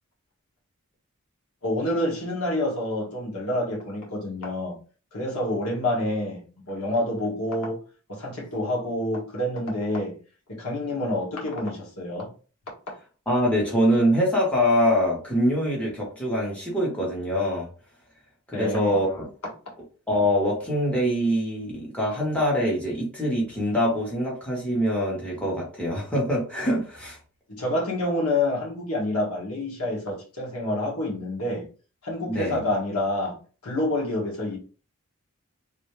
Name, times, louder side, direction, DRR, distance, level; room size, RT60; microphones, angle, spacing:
voice 1, 1.6-4.8 5.1-10.2 10.5-12.3 12.9-13.0 18.5-19.0 27.5-31.7 32.0-34.6, left 1 dB, 80° left, 1.5 m, -28 dB
voice 2, 13.3-17.7 18.5-19.3 20.1-27.2 32.3-32.6, equal, 5° left, 1.3 m, -24 dB
3.2 x 2.7 x 3.1 m
head